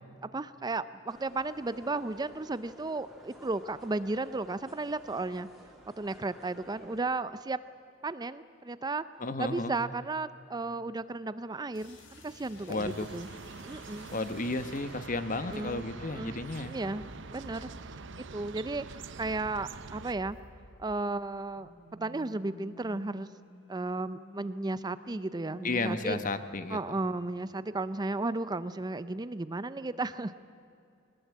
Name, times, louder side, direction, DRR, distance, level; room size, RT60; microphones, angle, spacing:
voice 1, 0.2-5.5 6.0-7.6 8.0-9.0 9.4-13.3 13.6-14.1 15.4-17.7 18.3-20.4 20.8-21.7 22.0-23.3 23.7-26.2 26.7-30.4, right 3 dB, 20° right, 14 dB, 0.5 m, -34 dB
sound 1, 1.1-7.0, equal, ahead, 3.2 m, -54 dB
voice 2, 9.2-9.8 12.7-13.1 14.1-16.8 25.6-26.8, left 2 dB, 45° left, 11 dB, 1.2 m, -33 dB
sound 2, 11.7-21.3 21.5-26.6, equal, 65° left, 3.8 m, -51 dB
sound 3, 12.8-20.1, right 5 dB, 65° right, 0.7 m, -46 dB
22.5 x 20.0 x 8.5 m, 2.5 s
head